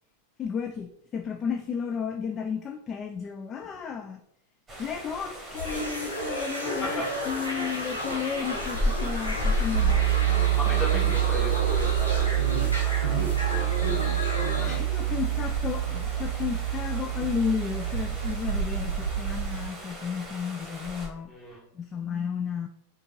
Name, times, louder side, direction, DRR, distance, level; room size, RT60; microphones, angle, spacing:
voice 1, 0.4-4.2 4.8-11.2 14.5-21.3 21.7-22.7, left 7 dB, 25° left, 6 dB, 0.3 m, -33 dB
sound 1, 4.7-21.1, left 1 dB, 10° right, 1.6 m, -36 dB
sound 2, 5.5-14.8, equal, 85° left, 1.2 m, -33 dB
sound 3, 9.7-19.7, right 14 dB, 70° right, 0.4 m, -27 dB
voice 2, 10.5-12.4 12.7-13.3 21.3-21.6, equal, 10° left, -5 dB, 1.8 m, -35 dB
4.9 x 2.7 x 3.7 m, 0.73 s
figure-of-eight pair, 90°, 0 cm